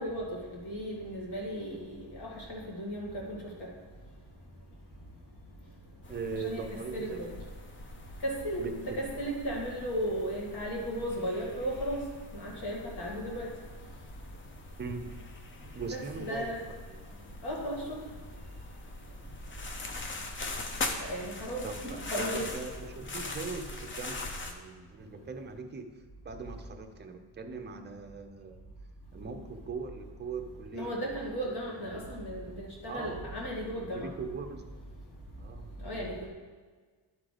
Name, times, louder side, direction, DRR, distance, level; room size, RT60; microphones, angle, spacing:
voice 1, 0.0-3.7 6.3-6.7 6.9-7.3 8.2-12.0 12.3-13.5 15.8-16.7 17.4-18.0 21.0-22.5 30.7-34.1 35.8-36.3, equal, 55° left, -2 dB, 2.1 m, -35 dB
sound 1, 6.0-24.5, left 2 dB, 25° left, 0.6 m, -42 dB
voice 2, 6.1-7.2 8.6-9.0 14.8-15.1 15.7-16.5 16.9-17.3 21.6-24.2 24.5-25.9 26.2-28.6 29.1-31.0 31.9-32.1 32.9-33.2 33.9-34.6 35.4-36.1, right 4 dB, 25° right, 5 dB, 0.6 m, -40 dB
11.5 x 3.8 x 4.9 m, 1.5 s
wide cardioid pair, 170°, 46 cm